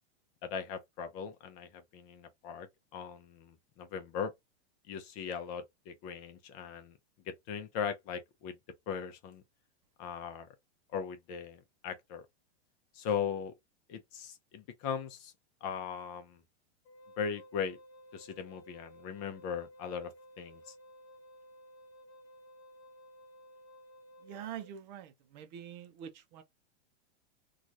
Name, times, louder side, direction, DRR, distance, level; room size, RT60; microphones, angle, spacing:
voice 1, 0.4-2.7 2.9-4.3 4.9-7.0 7.3-8.6 8.9-9.4 10.0-10.5 10.9-12.2 12.9-13.5 13.9-15.3 15.6-16.4 17.2-17.8 18.1-20.7, left 7 dB, 35° left, 0.7 m, -39 dB
Wind instrument woodwind instrument, 16.8-24.7, equal, 65° left, 1.1 m, -55 dB
voice 2, 24.2-26.4, right 9 dB, 40° right, 0.6 m, -45 dB
3.0 x 2.4 x 2.5 m
supercardioid pair, 150°, 33 cm